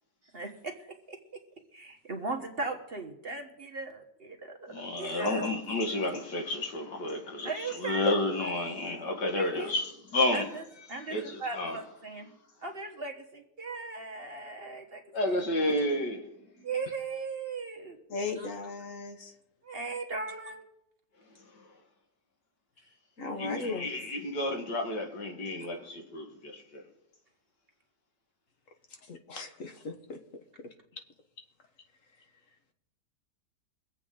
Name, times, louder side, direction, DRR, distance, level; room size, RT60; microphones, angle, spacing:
voice 1, 0.3-0.7 1.1-1.4 1.7-5.5 7.4-8.1 9.3-9.7 10.3-10.6 10.9-12.3 12.6-15.4 16.6-18.0 19.6-20.6 23.5-23.6, right 3 dB, 40° right, 1.4 m, -38 dB
voice 2, 4.7-10.5 11.1-11.8 15.1-16.3 23.4-26.8, left 1 dB, 85° left, 2.4 m, -31 dB
voice 3, 18.1-19.3 23.2-23.9 29.0-30.2, left 3 dB, 50° left, 1.5 m, -37 dB
23.5 x 8.2 x 3.8 m
omnidirectional pair, 1.8 m